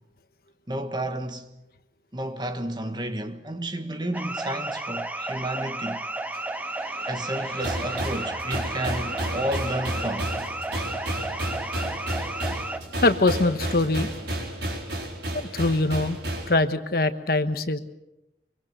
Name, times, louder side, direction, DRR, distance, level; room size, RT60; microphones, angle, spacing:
voice 1, 0.7-1.5 2.1-6.0 7.1-10.3, right 1 dB, 25° right, 1.4 m, -31 dB
sound 1, 4.1-12.8, right 2 dB, 10° right, 1.0 m, -33 dB
sound 2, 5.9-11.3, right 3 dB, 55° right, 2.4 m, -43 dB
sound 3, 7.6-16.5, right 1 dB, 75° right, 4.5 m, -32 dB
voice 2, 13.0-14.1 15.5-16.2 16.5-17.8, left 2 dB, 55° left, 1.2 m, -22 dB
24.0 x 24.0 x 6.6 m
head